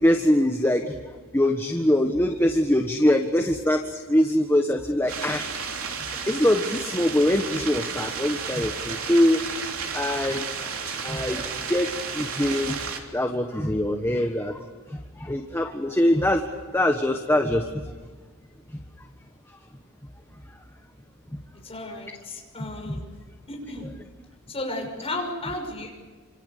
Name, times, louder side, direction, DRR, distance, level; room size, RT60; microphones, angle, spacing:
voice 1, 0.0-0.8 1.3-5.5 6.3-9.4 9.9-10.4 11.0-11.4 11.7-12.7 13.1-14.6 15.2-16.4 16.7-17.6, left 1 dB, 10° left, 4 dB, 1.3 m, -23 dB
sound 1, 5.1-13.0, right 5 dB, 70° right, 3.3 m, -32 dB
voice 2, 21.6-23.0 23.5-23.9 24.5-25.9, left 2 dB, 25° left, 1 dB, 6.3 m, -33 dB
28.5 x 26.5 x 6.8 m, 1.4 s
head